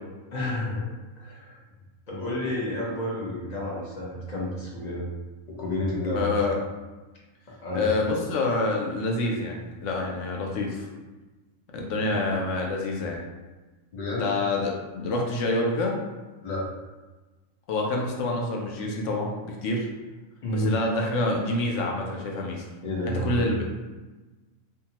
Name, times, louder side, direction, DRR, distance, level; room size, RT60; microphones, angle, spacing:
voice 1, 0.3-0.8 1.2-1.6 2.1-5.1 5.5-6.3 7.6-7.9 12.1-12.2 13.9-14.3 16.4-16.6 20.4-20.7 22.8-23.5, left 1 dB, 45° left, -5 dB, 0.6 m, -30 dB
voice 2, 6.1-6.6 7.7-10.9 11.7-13.2 14.2-15.9 17.7-19.9 20.5-22.7 23.0-23.7, left 2 dB, 70° left, 0 dB, 0.9 m, -27 dB
2.7 x 2.2 x 2.8 m, 1.2 s
omnidirectional pair, 1.4 m